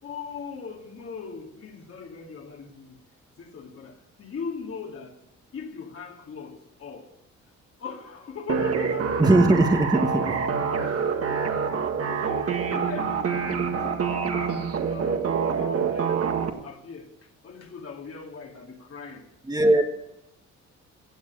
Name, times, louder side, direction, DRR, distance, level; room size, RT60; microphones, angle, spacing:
voice 1, 0.0-3.0 3.4-5.2 5.5-7.1 7.8-9.3 10.7-11.3 11.7-17.1 17.4-19.3 19.6-19.8, left 5 dB, 50° left, 2 dB, 2.5 m, -40 dB
sound 1, 8.5-16.5, right 6 dB, 50° right, 1.9 m, -26 dB
voice 2, 9.2-10.2 19.5-19.8, right 2 dB, 15° right, 5 dB, 1.4 m, -19 dB
16.0 x 7.5 x 8.7 m, 0.84 s
cardioid pair, 90°, 30 cm